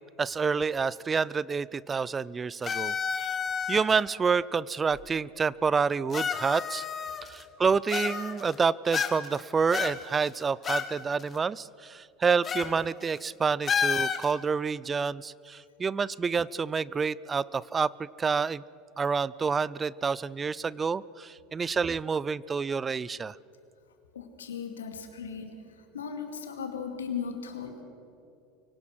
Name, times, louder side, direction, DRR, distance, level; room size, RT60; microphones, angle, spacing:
voice 1, 0.2-3.4 3.7-6.9 7.2-18.6 19.0-23.3, right 5 dB, 25° right, 22 dB, 0.4 m, -28 dB
sound 1, 2.6-4.0 5.0-5.1 6.1-7.4 7.9-8.5 8.9-9.4 9.7-10.9 11.2-11.3 12.4-12.7 13.0-13.2 13.7-14.3, left 6 dB, 30° left, 1.5 m, -30 dB
voice 2, 24.1-25.5 25.9-27.8, left 6 dB, 85° left, 6 dB, 2.3 m, -37 dB
24.5 x 17.5 x 6.2 m, 2.7 s
hypercardioid pair, 85°, 0 cm